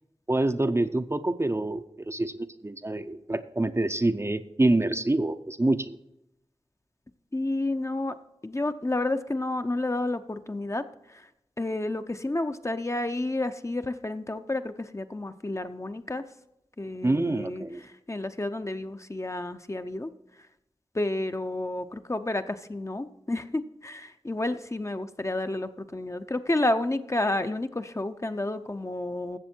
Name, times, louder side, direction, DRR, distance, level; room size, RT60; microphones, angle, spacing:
voice 1, 0.3-6.0 17.0-17.8, right 2 dB, 25° right, 10 dB, 0.5 m, -26 dB
voice 2, 7.3-8.1 8.4-10.8 11.1-11.2 11.6-16.2 16.8-20.1 20.9-29.4, left 2 dB, 30° left, 9 dB, 0.6 m, -30 dB
15.0 x 6.9 x 4.4 m, 0.86 s
wide cardioid pair, 50°, 10 cm